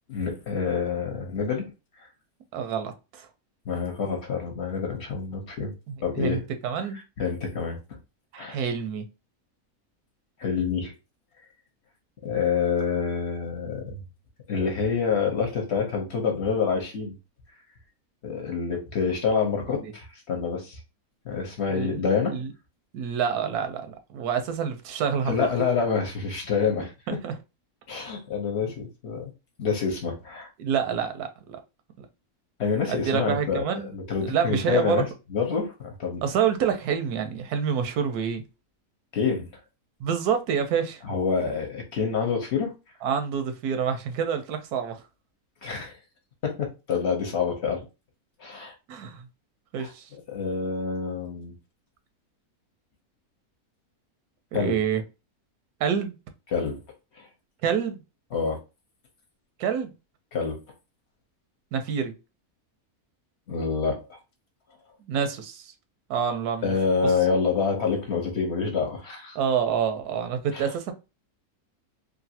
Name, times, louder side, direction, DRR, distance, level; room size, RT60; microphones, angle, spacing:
voice 1, 0.1-1.7 3.7-5.7 6.0-6.5 6.9-7.8 8.4-8.6 10.4-10.9 12.2-14.0 14.5-17.1 18.2-20.8 21.2-22.4 25.3-26.9 27.9-29.3 29.6-30.5 32.6-33.6 33.9-36.2 39.1-39.5 41.0-42.7 45.6-46.0 46.4-47.9 48.4-48.7 49.8-49.9 50.3-51.5 54.5-54.8 56.5-56.8 57.2-57.3 58.3-58.6 60.3-60.6 63.5-64.2 66.6-69.4 70.5-70.7, left 5 dB, 55° left, 0.9 m, -27 dB
voice 2, 2.5-3.3 5.9-7.0 8.3-9.1 19.7-19.9 21.7-22.5 22.9-25.5 27.1-27.3 30.6-31.6 32.0-32.1 32.9-34.0 34.2-35.1 36.2-38.4 40.0-41.0 43.0-45.0 48.9-49.2 49.7-50.1 54.5-55.0 55.8-56.2 57.6-58.0 59.6-59.9 61.7-62.1 65.0-65.7 66.1-66.8 67.0-67.1 69.3-70.9, right 7 dB, 85° right, 1.2 m, -27 dB
3.1 x 2.5 x 2.7 m
omnidirectional pair, 1.6 m